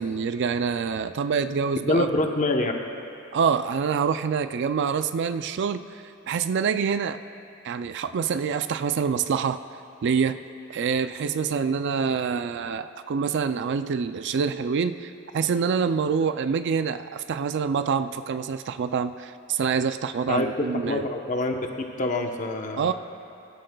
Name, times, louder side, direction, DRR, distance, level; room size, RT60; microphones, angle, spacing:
voice 1, 0.0-2.1 3.3-7.2 7.6-9.6 10.0-10.4 10.7-21.1 22.8-22.9, right 6 dB, 55° right, 11 dB, 0.4 m, -26 dB
voice 2, 1.9-2.7 20.3-20.5 20.9-21.6 22.0-22.9, left 2 dB, 40° left, 3 dB, 0.9 m, -25 dB
23.0 x 11.5 x 2.3 m, 2.7 s
head